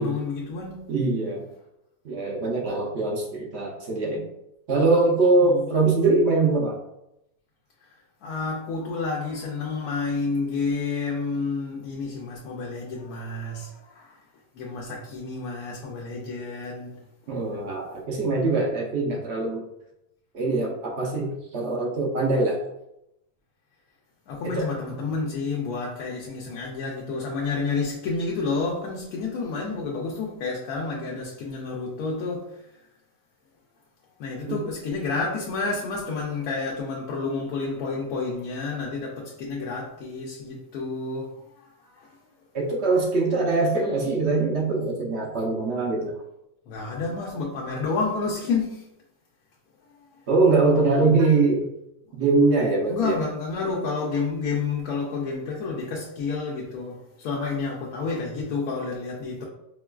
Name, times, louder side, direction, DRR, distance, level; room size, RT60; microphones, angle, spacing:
voice 1, 0.0-0.9 5.4-5.7 8.2-14.1 14.6-16.9 24.3-32.4 34.2-41.3 42.0-42.1 46.7-48.8 52.9-59.5, left 4 dB, 75° left, 1.1 m, -30 dB
voice 2, 0.9-1.4 2.0-4.3 4.7-6.8 17.3-19.6 20.3-22.6 24.4-24.7 34.5-34.6 42.5-46.1 50.3-51.7 52.1-53.2, right 3 dB, 60° right, 0.8 m, -23 dB
4.5 x 2.3 x 2.2 m
omnidirectional pair, 1.6 m